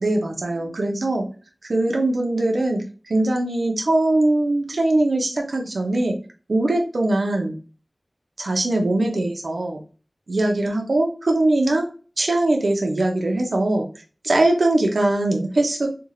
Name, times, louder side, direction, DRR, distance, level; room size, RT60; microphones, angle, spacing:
voice 1, 0.0-1.2 1.6-2.8 3.1-6.2 6.5-7.6 8.4-9.8 10.3-11.9 12.2-13.9 14.2-15.9, right 2 dB, 80° right, 2 dB, 0.8 m, -21 dB
3.4 x 2.4 x 3.1 m, 0.36 s
wide cardioid pair, 50°, 0 cm